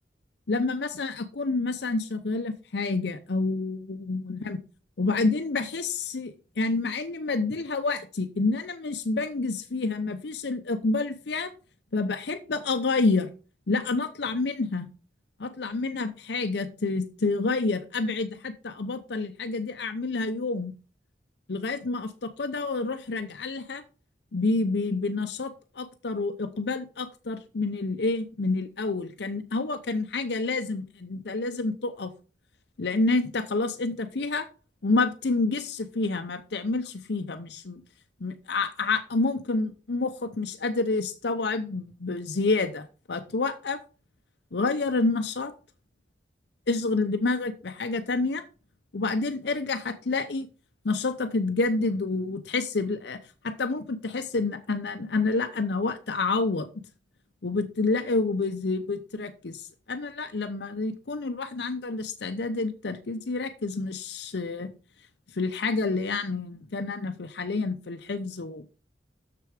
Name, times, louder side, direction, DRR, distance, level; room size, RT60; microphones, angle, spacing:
voice 1, 0.5-4.6 5.0-11.5 11.9-13.3 13.7-14.9 15.4-20.7 21.5-23.8 24.3-32.1 32.8-34.5 34.8-37.8 38.2-43.8 44.5-45.5 46.7-48.4 48.9-50.5 50.8-56.7 57.4-64.7 65.3-68.8, left 3 dB, 65° left, 0.6 m, -28 dB
6.8 x 6.8 x 4.9 m
head